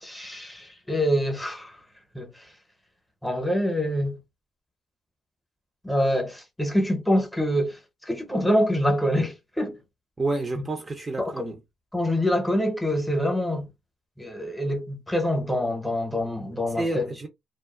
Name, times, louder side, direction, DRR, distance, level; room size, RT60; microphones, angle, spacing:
voice 1, 0.0-1.8 2.1-2.5 3.2-4.2 5.8-9.8 11.2-11.4 11.9-13.7 14.2-17.1, equal, 10° left, 0.8 m, -25 dB
voice 2, 10.2-11.6 16.8-17.3, right 2 dB, 25° right, 0.5 m, -29 dB
2.5 x 2.2 x 2.3 m
cardioid pair, 90°, 0 cm